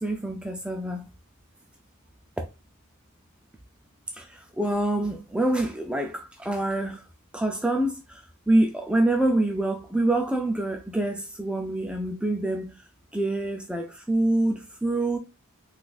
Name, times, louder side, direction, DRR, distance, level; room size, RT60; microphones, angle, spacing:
voice 1, 0.0-1.0 4.2-7.0 7.3-12.7 13.1-15.2, right 1 dB, 5° right, 0.3 m, -26 dB
3.9 x 2.4 x 2.3 m
head